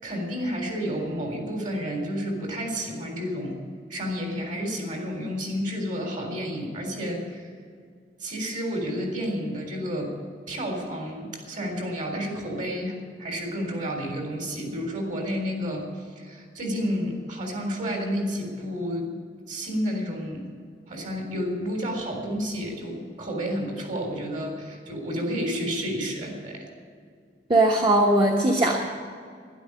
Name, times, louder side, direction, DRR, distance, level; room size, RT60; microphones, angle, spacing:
voice 1, 0.0-3.6 3.9-7.5 8.2-10.2 10.5-15.9 16.2-19.1 19.5-20.5 20.9-26.7, equal, 45° right, 3 dB, 3.8 m, -30 dB
voice 2, 27.5-28.8, right 1 dB, 30° right, 0 dB, 1.3 m, -19 dB
12.0 x 11.5 x 9.7 m, 2.1 s
head